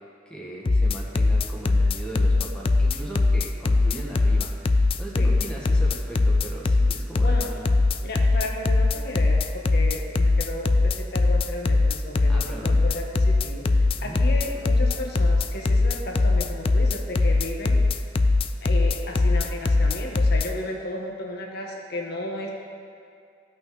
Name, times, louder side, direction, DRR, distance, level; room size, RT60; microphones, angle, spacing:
voice 1, 0.2-7.7 12.3-12.8 14.0-14.2, right 1 dB, 5° left, -5 dB, 1.5 m, -38 dB
sound 1, 0.7-20.5, left 3 dB, 30° left, 0.3 m, -20 dB
voice 2, 8.0-17.8 18.6-22.5, left 1 dB, 55° left, 0 dB, 1.3 m, -34 dB
15.0 x 5.6 x 4.1 m, 2.4 s
head